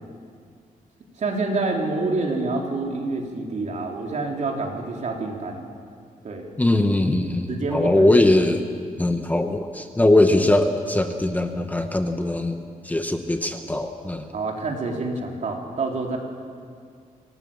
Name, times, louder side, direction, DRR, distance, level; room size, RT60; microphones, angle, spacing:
voice 1, 1.2-5.7 6.2-6.5 7.5-8.1 14.3-16.2, right 3 dB, 55° right, 1 dB, 3.5 m, -27 dB
voice 2, 6.6-8.6 9.0-12.6 12.9-14.2, left 1 dB, 10° left, 6 dB, 1.0 m, -21 dB
25.5 x 18.5 x 7.3 m, 2.1 s
wide cardioid pair, 140°, 15 cm